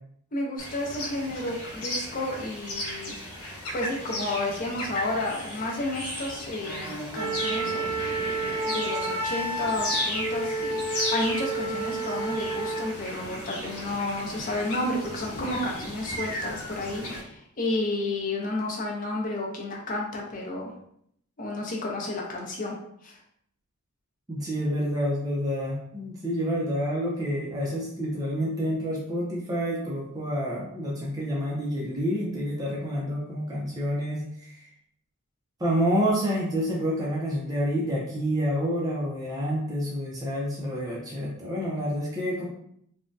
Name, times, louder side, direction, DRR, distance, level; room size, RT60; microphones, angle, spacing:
voice 1, 0.3-3.1 3.7-8.2 8.6-20.7 21.4-22.8 23.0-23.2, left 2 dB, 40° left, -1 dB, 0.6 m, -31 dB
sound 1, 0.6-17.2, left 1 dB, 85° left, 1.0 m, -35 dB
Wind instrument woodwind instrument, 7.1-13.0, right 2 dB, 70° right, 0.6 m, -30 dB
voice 2, 24.3-34.7 35.6-42.5, equal, 15° right, -5 dB, 0.5 m, -28 dB
3.4 x 2.1 x 2.6 m, 0.70 s
head